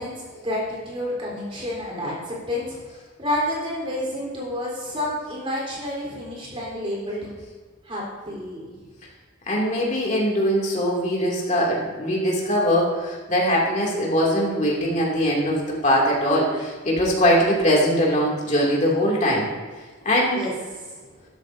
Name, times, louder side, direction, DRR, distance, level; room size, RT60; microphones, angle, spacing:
voice 1, 0.0-7.3 7.8-8.7 20.3-20.5 20.9-21.0, left 1 dB, 30° right, -5 dB, 3.8 m, -30 dB
voice 2, 9.5-19.5 20.0-20.4, equal, 35° left, -4 dB, 2.6 m, -21 dB
12.5 x 12.5 x 2.7 m, 1.4 s
head